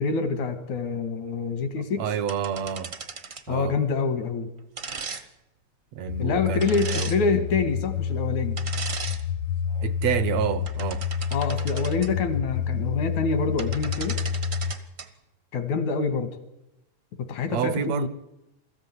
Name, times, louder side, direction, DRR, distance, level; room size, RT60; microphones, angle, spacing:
voice 1, 0.0-2.0 3.5-4.5 6.2-8.6 11.3-14.2 15.5-16.4 17.2-18.1, left 4 dB, 85° left, 3.0 m, -26 dB
voice 2, 2.0-2.9 3.5-3.8 5.9-7.1 9.8-11.1 17.5-18.1, right 8 dB, 70° right, 2.0 m, -28 dB
sound 1, 2.3-3.5 4.8-5.2 6.6-7.2 8.6-9.2 9.7-9.9 10.5-12.1 13.3-13.4 13.6-15.1, right 5 dB, 45° right, 0.8 m, -36 dB
sound 2, 6.1-14.7, left 7 dB, 70° left, 1.3 m, -29 dB
22.0 x 14.0 x 9.7 m
omnidirectional pair, 3.3 m